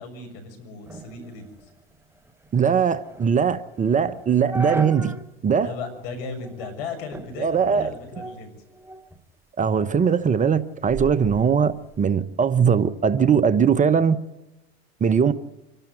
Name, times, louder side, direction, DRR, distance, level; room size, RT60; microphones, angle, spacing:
voice 1, 0.0-1.7 5.5-8.6, left 4 dB, 70° left, 6 dB, 6.8 m, -36 dB
sound 1, 0.9-5.3 5.7-5.8 6.4-6.8 7.1-9.2 9.6-12.0, right 2 dB, 10° right, 1.3 m, -37 dB
voice 2, 2.5-5.1 5.4-5.7 7.4-7.9 9.6-14.2 15.0-15.3, right 7 dB, 25° right, 13 dB, 0.9 m, -20 dB
26.0 x 12.5 x 9.1 m, 0.99 s
hypercardioid pair, 95°, 31 cm